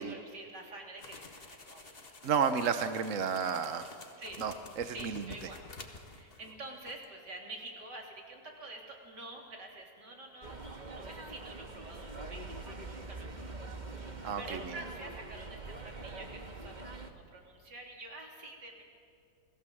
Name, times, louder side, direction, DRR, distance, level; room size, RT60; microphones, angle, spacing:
voice 1, 0.0-2.1 4.2-4.4 4.9-5.6 6.1-13.6 13.9-14.1 14.4-18.8, right 2 dB, 75° right, 0 dB, 4.1 m, -48 dB
sound 1, 1.0-6.6 6.9-7.1, left 3 dB, 35° left, 1.8 m, -51 dB
voice 2, 2.2-3.9 4.4-5.3 14.2-14.8, right 6 dB, 55° right, 9 dB, 1.2 m, -32 dB
sound 2, 10.4-17.1, right 3 dB, 25° right, 1.6 m, -44 dB
29.0 x 19.0 x 7.8 m, 2.3 s
omnidirectional pair, 1.8 m